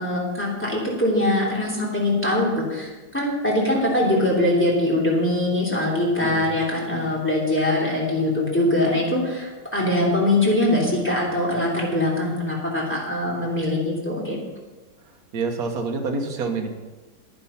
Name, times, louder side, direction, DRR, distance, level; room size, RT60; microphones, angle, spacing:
voice 1, 0.0-14.4, left 1 dB, 5° left, -4 dB, 2.9 m, -22 dB
voice 2, 15.3-16.7, right 4 dB, 50° right, 3 dB, 1.6 m, -27 dB
10.5 x 9.9 x 5.6 m, 1.3 s
omnidirectional pair, 2.1 m